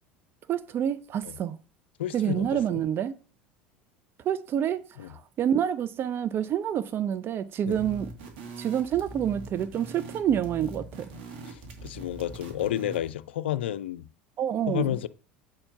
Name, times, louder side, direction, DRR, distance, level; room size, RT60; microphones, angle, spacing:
voice 1, 0.5-1.6 2.1-3.2 4.3-8.1 8.6-10.8 14.4-15.0, right 9 dB, 40° right, 0.5 m, -28 dB
voice 2, 2.0-2.8 5.0-5.1 7.6-7.9 11.5-14.0 14.7-15.1, left 12 dB, 80° left, 0.4 m, -31 dB
sound 1, 7.7-13.1, right 2 dB, 65° right, 2.0 m, -42 dB
7.6 x 4.4 x 5.7 m
hypercardioid pair, 80°, 6 cm